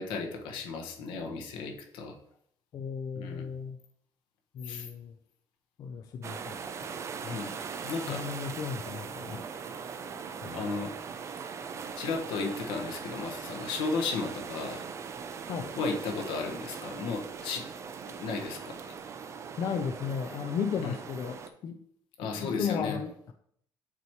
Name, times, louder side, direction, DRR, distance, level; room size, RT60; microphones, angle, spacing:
voice 1, 0.0-2.1 3.1-3.4 4.6-4.9 7.2-7.6 7.8-8.2 10.5-10.9 12.0-14.8 15.8-17.7 18.1-18.9 20.8-21.0 22.2-23.0, left 4 dB, 85° left, 3 dB, 1.3 m, -34 dB
voice 2, 2.7-3.8 4.5-5.1 5.8-6.9 8.1-9.4 10.4-10.9 15.5-15.8 19.6-21.8 22.2-23.3, left 6 dB, 50° left, 6 dB, 0.5 m, -35 dB
sound 1, 6.2-21.5, right 6 dB, 35° right, 0.5 m, -40 dB
8.1 x 3.0 x 4.6 m, 0.68 s
cardioid pair, 140°, 8 cm